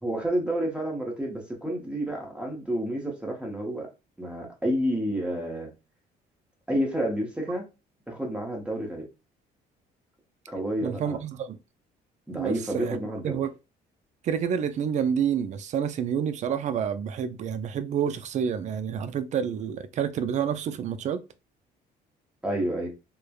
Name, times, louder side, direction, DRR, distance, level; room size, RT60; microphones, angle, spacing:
voice 1, 0.0-3.9 4.2-5.7 6.7-7.6 8.1-9.1 10.5-11.2 12.3-13.4 22.4-22.9, right 1 dB, 5° right, 0.8 m, -29 dB
voice 2, 10.8-11.6 12.3-13.0 13.2-13.5 14.2-21.2, right 8 dB, 45° right, 0.4 m, -28 dB
3.1 x 2.0 x 2.3 m
cardioid pair, 110°, 17 cm